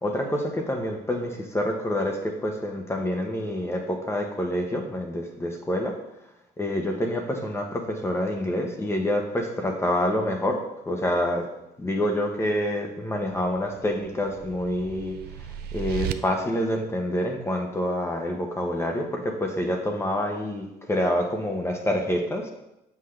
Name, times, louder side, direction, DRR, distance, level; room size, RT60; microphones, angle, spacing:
voice 1, 0.0-6.0 6.6-11.5 11.8-22.5, left 1 dB, 15° left, 2 dB, 0.9 m, -27 dB
sound 1, 13.3-16.1, right 10 dB, 70° right, 0.5 m, -36 dB
7.3 x 5.8 x 3.3 m, 0.89 s
cardioid pair, 110°, 17 cm